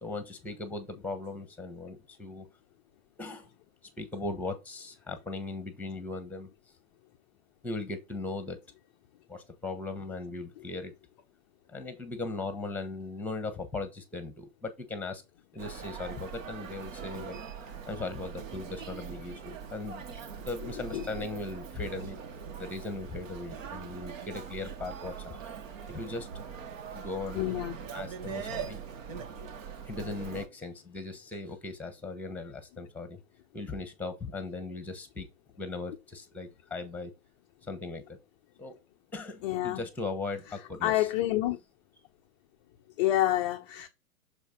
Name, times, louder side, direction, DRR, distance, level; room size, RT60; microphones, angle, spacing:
voice 1, 0.0-2.5 3.2-3.5 4.0-6.5 7.6-8.6 9.3-10.9 11.7-15.2 15.5-17.4 17.9-20.0 20.4-22.2 22.6-25.4 25.9-26.3 26.9-27.6 27.9-28.8 29.8-33.2 33.5-35.3 35.6-37.1 37.6-38.2 38.6-38.8 39.1-41.1, left 3 dB, 5° left, 1.1 m, -38 dB
Human voice, 15.6-30.5, right 7 dB, 55° right, 1.5 m, -42 dB
voice 2, 27.4-27.8 29.1-29.2 39.4-39.8 40.8-41.6 43.0-43.9, left 14 dB, 25° left, 0.5 m, -28 dB
6.6 x 4.6 x 4.0 m
hypercardioid pair, 120°, 46 cm